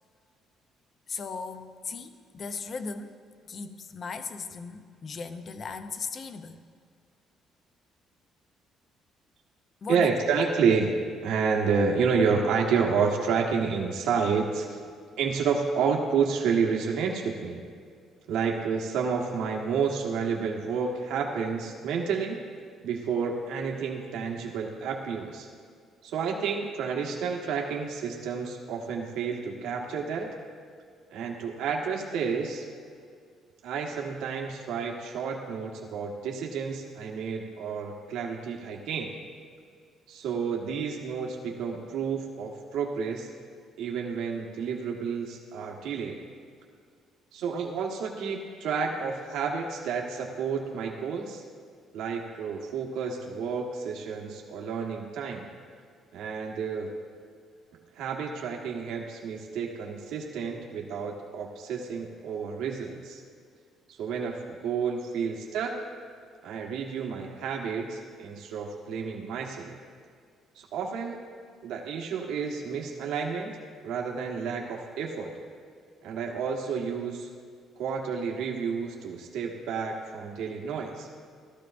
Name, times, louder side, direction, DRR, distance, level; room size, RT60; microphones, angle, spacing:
voice 1, 1.1-6.6 9.8-10.2, left 4 dB, 30° left, 9 dB, 0.6 m, -37 dB
voice 2, 9.9-10.9 11.2-14.8 15.2-17.6 18.3-22.4 22.8-25.5 26.0-30.3 31.1-32.6 33.6-39.2 40.1-43.3 43.8-46.2 47.3-51.4 51.9-55.5 56.1-56.9 57.9-63.2 63.9-65.8 66.4-69.8 70.5-71.2 71.6-73.6 73.8-75.3 76.0-77.3 77.8-81.1, right 5 dB, 85° right, -1 dB, 1.4 m, -30 dB
17.0 x 13.0 x 2.6 m, 2.2 s
cardioid pair, 175°, 0 cm